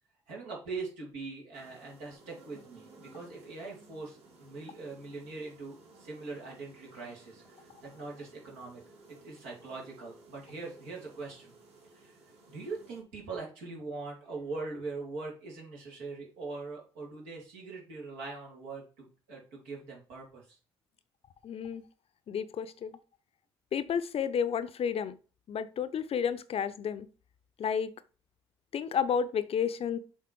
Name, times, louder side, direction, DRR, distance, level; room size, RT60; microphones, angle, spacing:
voice 1, 0.3-8.8 9.2-11.5 11.9-12.1 12.5-20.6, right 3 dB, 75° right, 3.0 m, -42 dB
sound 1, 1.5-13.0, right 3 dB, 55° right, 3.0 m, -57 dB
voice 2, 21.4-21.8 22.3-22.9 23.7-25.1 25.5-27.1 27.6-27.9 28.7-30.0, left 7 dB, 50° left, 0.7 m, -31 dB
7.3 x 3.7 x 4.6 m
hypercardioid pair, 45°, 13 cm